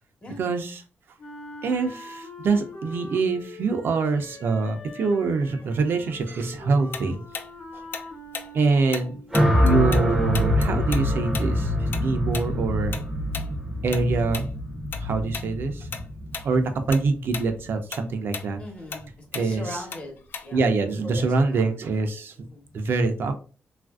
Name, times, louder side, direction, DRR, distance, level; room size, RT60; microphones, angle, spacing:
voice 1, 0.4-0.8 1.6-7.2 7.7-7.8 8.5-9.2 9.6-13.0 13.8-14.5 15.0-15.9 16.4-18.6 19.3-19.8 20.5-22.3 22.7-23.4, right 3 dB, 65° right, 6 dB, 0.4 m, -25 dB
Wind instrument woodwind instrument, 1.2-9.4, left 2 dB, 75° left, 0.7 m, -43 dB
Tick-tock, 6.9-10.1 10.3-15.0 15.3-15.5 15.9-16.5 16.8-20.7, left 5 dB, 60° left, 0.3 m, -36 dB
sound 1, 9.3-17.6, left 1 dB, 5° right, 0.6 m, -25 dB
voice 2, 18.6-20.7 21.0-22.0 22.4-22.8, left 1 dB, 30° left, 1 dB, 1.0 m, -40 dB
3.1 x 2.4 x 2.3 m, 0.37 s
wide cardioid pair, 125°, 4 cm